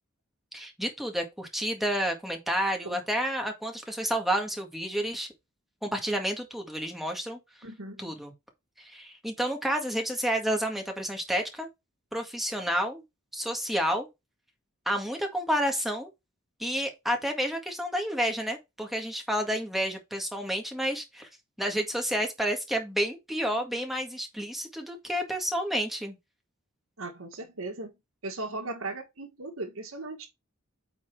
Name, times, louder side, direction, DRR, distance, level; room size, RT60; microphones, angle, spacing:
voice 1, 0.5-5.3 5.8-7.4 8.0-8.3 8.8-11.7 12.1-13.0 13.3-14.1 14.9-16.1 16.6-21.3 21.6-26.2, equal, ahead, 1.8 m, -30 dB
voice 2, 7.6-8.2 27.0-27.9 28.2-30.3, right 2 dB, 75° right, 1.6 m, -37 dB
8.6 x 4.1 x 4.6 m
head